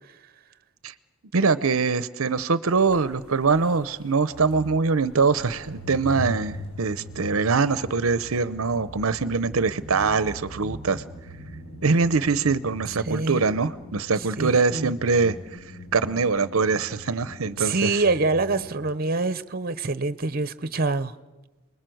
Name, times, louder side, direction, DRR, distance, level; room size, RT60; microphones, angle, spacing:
voice 1, 1.3-11.0 11.8-15.4 15.9-17.9, right 4 dB, 70° right, 0.7 m, -23 dB
sound 1, 2.8-18.7, left 1 dB, 80° left, 7.2 m, -41 dB
voice 2, 13.0-13.4 14.2-14.9 17.6-21.1, right 3 dB, 45° right, 0.9 m, -25 dB
29.0 x 21.0 x 7.8 m
head